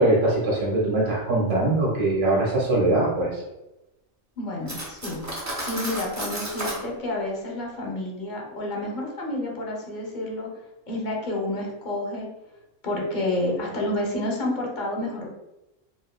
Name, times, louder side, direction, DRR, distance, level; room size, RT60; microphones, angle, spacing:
voice 1, 0.0-3.4, right 2 dB, 55° right, -4 dB, 1.4 m, -22 dB
voice 2, 4.4-5.2 5.7-10.5 10.9-12.3 12.8-15.3, left 1 dB, 45° left, -1 dB, 0.8 m, -29 dB
Cutlery silverware, 4.7-6.8, right 1 dB, 20° right, 0.5 m, -32 dB
4.8 x 2.2 x 2.2 m, 0.95 s
omnidirectional pair, 1.3 m